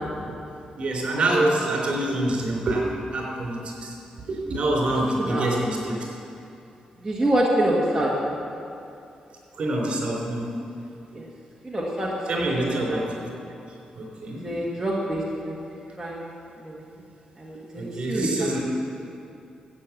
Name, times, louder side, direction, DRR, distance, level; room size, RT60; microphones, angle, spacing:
voice 1, 0.8-2.9 3.1-3.9 4.3-6.0 9.5-10.5 12.3-13.1 13.9-14.4 17.8-18.6, right 1 dB, 50° right, -2 dB, 3.8 m, -26 dB
voice 2, 7.0-8.3 11.1-11.2 11.6-13.0 14.4-15.7 16.0-16.2 16.6-16.9 17.4-18.3, right 1 dB, 10° right, -6 dB, 1.8 m, -26 dB
13.5 x 8.8 x 7.4 m, 2.6 s
wide cardioid pair, 130°, 2 cm